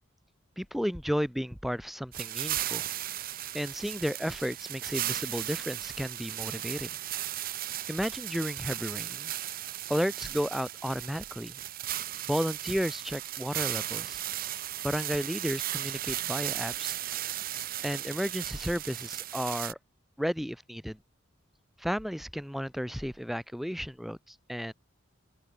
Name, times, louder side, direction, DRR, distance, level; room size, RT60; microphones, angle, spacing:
voice 1, 0.6-2.8 3.5-7.0 7.9-9.3 9.9-11.6 12.3-14.2 14.8-17.0 17.8-19.8 20.2-21.0 21.8-24.7, equal, ahead, 3.6 m, -33 dB
sound 1, 2.1-19.7, right 13 dB, 45° right, 0.7 m, -36 dB
open air
head